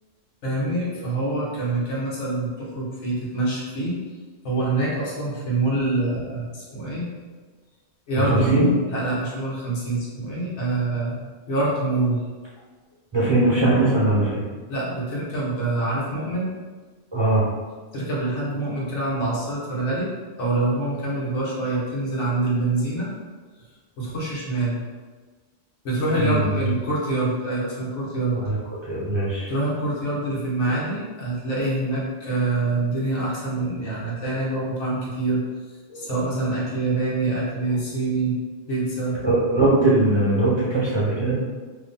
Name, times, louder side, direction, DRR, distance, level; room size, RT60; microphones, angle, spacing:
voice 1, 0.4-4.0 4.4-7.1 8.1-11.2 11.5-12.2 14.7-16.5 17.9-20.1 20.4-23.1 24.0-24.8 25.8-28.4 29.5-35.4 35.9-38.4 38.7-39.2, right 2 dB, 70° left, -5 dB, 1.2 m, -25 dB
voice 2, 8.2-8.7 13.1-14.4 17.1-17.4 26.1-26.5 28.3-28.6 28.9-29.5 39.2-41.3, right 2 dB, 25° right, -10 dB, 0.9 m, -20 dB
2.8 x 2.6 x 3.6 m, 1.4 s
omnidirectional pair, 1.3 m